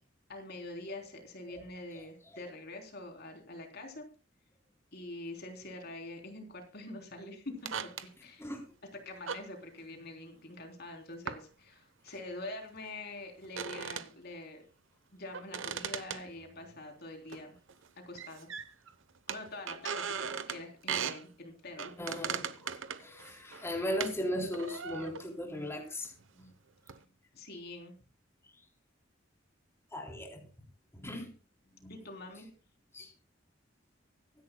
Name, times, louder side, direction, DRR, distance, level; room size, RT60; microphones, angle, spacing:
voice 1, 0.3-4.0 4.9-8.5 9.1-14.6 15.1-17.5 18.1-18.5 19.3-21.9 27.3-27.9 31.9-32.5, left 2 dB, 55° left, 3 dB, 3.6 m, -45 dB
sound 1, 7.7-8.1 9.3-9.5 11.3-11.4 12.1-12.2 13.4-14.1 15.3-16.8 17.3-17.4 17.7-17.8 18.2-18.9 19.3-20.6 20.9-21.2 21.8-24.2 24.5-25.4 26.0-26.2 26.9-27.0, right 7 dB, 85° right, 0.9 m, -38 dB
voice 2, 22.0-22.7 23.0-26.5 29.9-30.4 30.9-31.3 31.8-31.9 32.9-33.1, left 1 dB, 15° left, 1 dB, 3.5 m, -37 dB
24.0 x 11.0 x 2.3 m, 0.32 s
head